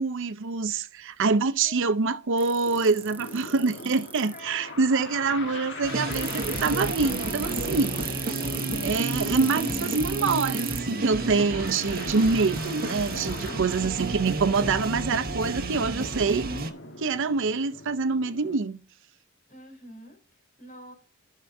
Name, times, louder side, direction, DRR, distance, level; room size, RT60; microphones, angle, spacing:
voice 1, 0.0-8.2 8.8-16.5 17.0-18.8, right 4 dB, 60° right, 0.6 m, -25 dB
voice 2, 1.2-2.0 4.2-5.4 13.4-13.8 19.5-20.9, equal, 40° left, 3.8 m, -48 dB
sound 1, 2.4-4.4 6.1-10.8 11.7-13.5, right 3 dB, 10° right, 0.5 m, -36 dB
sound 2, 2.6-18.6, left 2 dB, 60° left, 1.5 m, -39 dB
sound 3, 5.8-16.7, right 3 dB, 45° right, 1.0 m, -32 dB
15.0 x 5.8 x 2.6 m
head